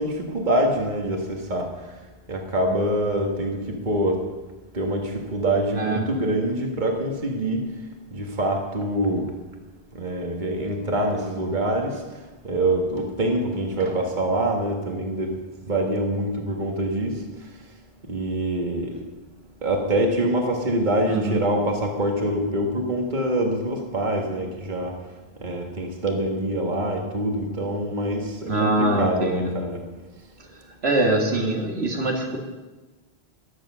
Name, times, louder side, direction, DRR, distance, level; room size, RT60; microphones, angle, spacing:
voice 1, 0.0-1.7 2.3-4.2 4.7-7.6 8.1-9.3 9.9-12.0 12.4-15.4 15.6-17.2 18.1-19.0 19.6-24.9 25.4-29.8, right 1 dB, 50° right, 2 dB, 1.9 m, -25 dB
voice 2, 5.7-6.1 21.1-21.4 28.4-29.5 30.8-32.4, right 1 dB, 90° right, 0 dB, 2.4 m, -23 dB
15.0 x 11.0 x 6.3 m, 1.2 s
omnidirectional pair, 1.0 m